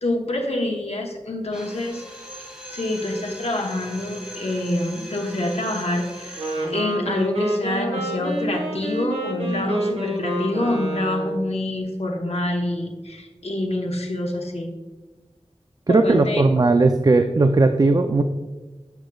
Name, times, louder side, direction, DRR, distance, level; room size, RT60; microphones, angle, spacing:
voice 1, 0.0-2.0 2.7-14.7 15.9-16.4, left 1 dB, 75° left, 1 dB, 1.0 m, -26 dB
Drill, 1.5-6.8, equal, 5° right, 1.9 m, -39 dB
Wind instrument woodwind instrument, 6.4-11.5, right 1 dB, 75° right, 1.2 m, -27 dB
voice 2, 15.9-18.2, right 3 dB, 40° right, 7 dB, 0.4 m, -17 dB
7.9 x 6.2 x 2.3 m, 1.2 s
wide cardioid pair, 50°, 11 cm